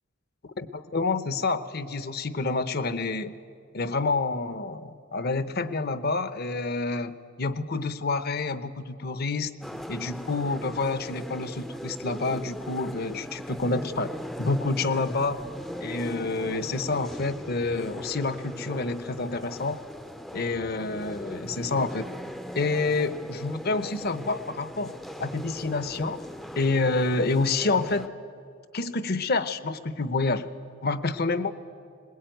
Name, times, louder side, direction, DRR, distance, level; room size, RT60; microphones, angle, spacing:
voice 1, 0.6-3.3 3.7-9.5 9.9-14.1 14.4-15.5 15.8-19.8 20.3-22.1 22.5-24.9 25.2-26.2 26.5-28.1 28.7-30.5 30.8-31.5, left 3 dB, 50° left, 12 dB, 0.9 m, -28 dB
sound 1, 9.6-28.1, equal, ahead, 0.5 m, -39 dB
21.5 x 20.5 x 9.2 m, 2.4 s
head